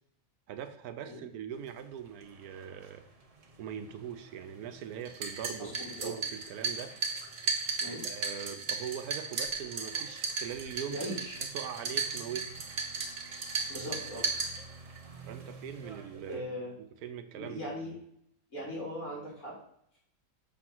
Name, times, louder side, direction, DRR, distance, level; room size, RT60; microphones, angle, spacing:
voice 1, 0.5-3.0 3.6-5.7 6.0-6.9 8.0-11.0 11.5-12.5 15.3-16.4 17.0-17.7, right 9 dB, 90° right, 9 dB, 1.2 m, -41 dB
sound 1, 1.5-16.4, right 4 dB, 35° right, 0.7 m, -54 dB
sound 2, 5.1-15.0, right 4 dB, 60° right, 1.3 m, -35 dB
voice 2, 5.6-6.2 7.8-8.0 10.9-11.4 13.7-14.3 16.3-16.7 17.3-17.9 18.5-19.6, equal, 65° left, -5 dB, 3.8 m, -39 dB
6.9 x 3.7 x 6.0 m, 0.69 s
omnidirectional pair, 1.5 m